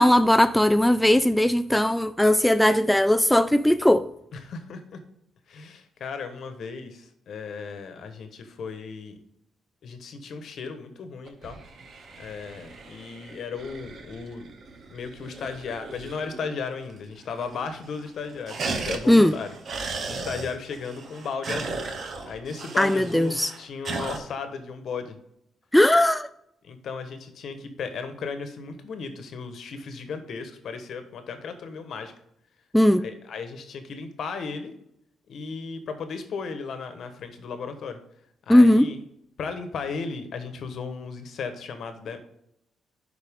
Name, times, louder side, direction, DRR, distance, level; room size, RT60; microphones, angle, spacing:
voice 1, 0.0-4.1 19.1-19.4 22.8-23.5 25.7-26.3 32.7-33.1 38.5-38.9, left 1 dB, 5° left, 0.3 m, -18 dB
voice 2, 4.3-5.0 5.5-9.2 9.8-11.6 12.2-14.5 14.9-21.9 22.3-25.2 26.6-32.1 33.0-34.7 35.3-38.0 38.5-39.0 39.4-42.2, left 5 dB, 65° left, 1.2 m, -35 dB
sound 1, 11.3-16.6 16.9-17.0 17.2-17.7 18.0-24.2, right 3 dB, 50° right, 1.1 m, -36 dB
11.5 x 4.6 x 3.6 m
cardioid pair, 90°, 0 cm